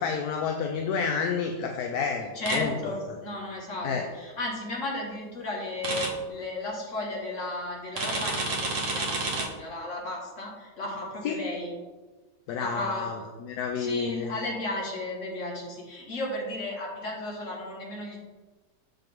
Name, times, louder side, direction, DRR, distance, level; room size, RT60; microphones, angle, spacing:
voice 1, 0.0-2.7 3.8-4.0 11.2-11.4 12.5-14.3, left 6 dB, 75° left, 3 dB, 1.1 m, -30 dB
voice 2, 2.3-11.7 12.6-13.2 13.8-18.2, left 2 dB, 50° left, -2 dB, 1.9 m, -34 dB
sound 1, 2.5-2.6 5.8-6.1 8.0-9.4, right 3 dB, 55° right, 1.5 m, -29 dB
7.4 x 5.8 x 3.5 m, 1.3 s
omnidirectional pair, 1.7 m